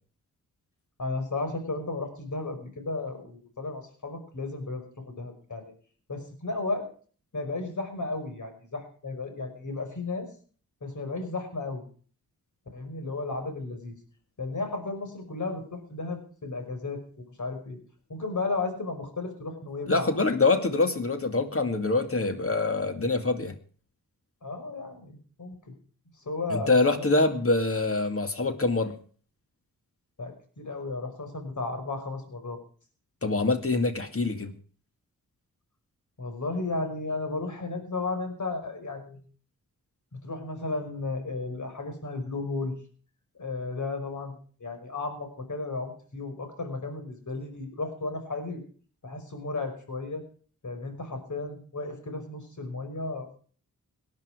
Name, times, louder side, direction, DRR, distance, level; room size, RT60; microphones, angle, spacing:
voice 1, 1.0-5.7 6.1-6.9 7.3-10.3 10.8-11.8 12.7-14.0 14.4-17.8 18.1-20.1 24.4-25.7 26.1-27.1 30.2-32.6 36.2-39.2 40.1-42.7 43.3-48.6 49.0-50.2 50.6-53.4, left 3 dB, 55° left, 6 dB, 5.5 m, -34 dB
voice 2, 19.9-23.5 26.5-29.0 33.2-34.5, left 3 dB, 40° left, 8 dB, 2.4 m, -25 dB
18.5 x 11.0 x 5.0 m, 0.43 s
cardioid pair, 45°, 36 cm